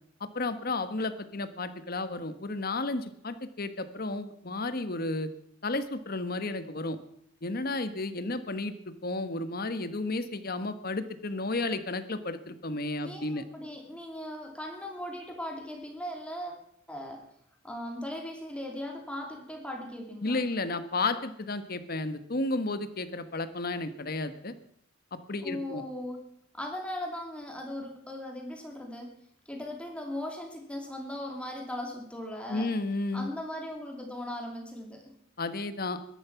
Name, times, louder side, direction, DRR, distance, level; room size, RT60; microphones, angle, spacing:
voice 1, 0.3-5.3 5.6-7.0 7.4-13.4 20.2-24.5 25.1-25.8 32.5-33.3 35.4-36.0, left 2 dB, 50° left, 11 dB, 1.3 m, -32 dB
voice 2, 13.0-16.6 16.9-17.2 17.6-20.4 25.4-26.2 26.5-29.1 29.5-32.7 33.1-35.2, left 1 dB, 5° left, 1 dB, 2.7 m, -38 dB
21.5 x 11.0 x 5.9 m, 0.73 s
head